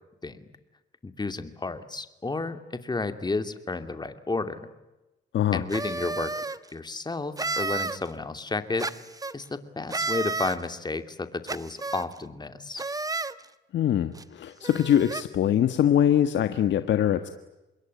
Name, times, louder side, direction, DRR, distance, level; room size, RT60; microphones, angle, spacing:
voice 1, 1.0-4.7 5.5-6.3 6.7-8.9 9.3-12.8, left 3 dB, 20° left, 9 dB, 2.7 m, -32 dB
sound 1, 5.7-6.6 7.4-8.0 8.8-9.3 9.9-10.6 11.5-12.1 12.8-13.3 14.2-14.3 14.6-15.2, right 3 dB, 20° right, 1.3 m, -31 dB
voice 2, 13.7-17.3, left 10 dB, 65° left, 9 dB, 1.6 m, -23 dB
26.5 x 22.0 x 9.8 m, 1.0 s
cardioid pair, 90°, 20 cm